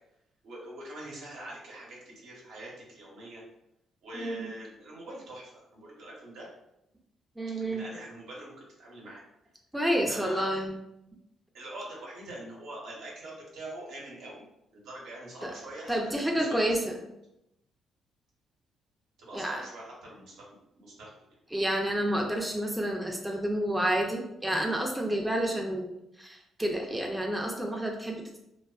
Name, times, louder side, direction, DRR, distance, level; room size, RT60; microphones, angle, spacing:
voice 1, 0.4-3.4 4.0-6.5 7.7-9.2 9.9-10.5 11.5-14.5 14.7-16.7 19.2-21.4, right 1 dB, 80° right, -4 dB, 0.9 m, -44 dB
voice 2, 4.1-4.5 7.4-7.9 9.7-10.8 15.4-15.5 15.9-17.0 19.3-19.6 21.5-25.9 26.2-28.4, right 1 dB, 5° right, 0 dB, 0.4 m, -29 dB
2.4 x 2.3 x 2.3 m, 0.85 s
cardioid pair, 90°, 0 cm